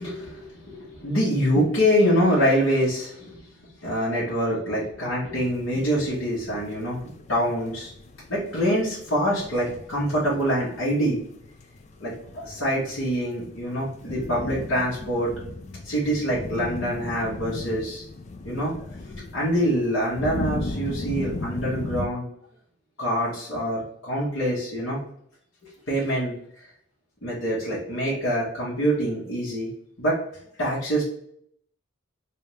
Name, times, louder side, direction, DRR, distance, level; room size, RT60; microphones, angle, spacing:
voice 1, 0.0-3.4 3.8-7.9 8.3-11.2 12.0-15.5 15.8-18.0 18.4-22.2 23.0-25.0 25.9-26.3 27.2-29.7 30.0-30.2 30.6-31.0, equal, 60° left, -8 dB, 1.3 m, -25 dB
sound 1, 5.4-22.1, left 2 dB, 35° left, 0.3 m, -37 dB
3.3 x 2.7 x 3.3 m, 0.69 s
head